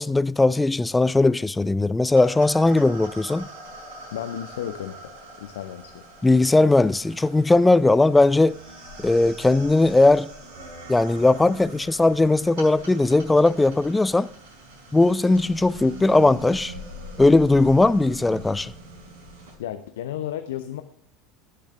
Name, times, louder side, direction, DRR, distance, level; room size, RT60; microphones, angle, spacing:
voice 1, 0.0-3.5 6.2-8.6 9.0-10.3 10.9-14.3 14.9-16.7 17.2-18.7, left 2 dB, 10° left, 0.4 m, -18 dB
sound 1, 2.2-19.6, right 1 dB, 60° right, 4.8 m, -42 dB
voice 2, 4.1-5.1 5.4-6.0 19.6-20.8, left 11 dB, 65° left, 0.6 m, -33 dB
17.5 x 6.8 x 3.4 m
figure-of-eight pair, 75°, 0 cm